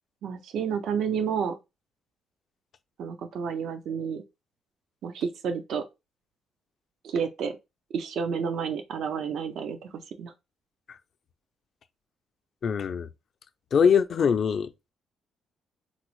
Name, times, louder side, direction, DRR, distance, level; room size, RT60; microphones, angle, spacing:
voice 1, 0.2-1.6 3.0-4.2 5.0-5.8 7.0-7.6 7.9-10.3, right 6 dB, 70° right, 0.5 m, -30 dB
voice 2, 12.6-13.1 13.7-14.7, left 7 dB, 55° left, 0.4 m, -22 dB
3.8 x 2.0 x 3.0 m
cardioid pair, 90°, 0 cm